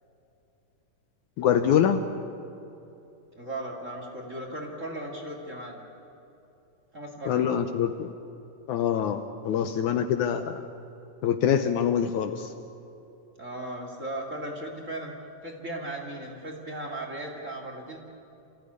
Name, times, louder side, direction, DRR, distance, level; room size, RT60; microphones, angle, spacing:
voice 1, 1.4-2.0 7.3-8.1 8.7-10.6 11.2-12.5, left 8 dB, 70° left, 7 dB, 2.0 m, -25 dB
voice 2, 3.3-5.8 6.9-7.5 13.4-15.1 15.4-18.0, right 1 dB, 25° right, 1 dB, 2.3 m, -37 dB
28.0 x 15.5 x 9.8 m, 2.9 s
omnidirectional pair, 3.9 m